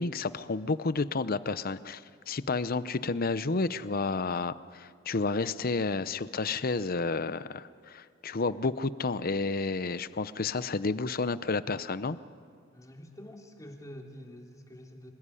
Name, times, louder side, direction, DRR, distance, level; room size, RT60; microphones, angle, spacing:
voice 1, 0.0-2.0 2.3-12.2, left 3 dB, 50° left, 15 dB, 0.7 m, -31 dB
voice 2, 12.7-15.1, equal, 15° left, 2 dB, 3.0 m, -47 dB
26.5 x 20.5 x 9.9 m, 2.2 s
head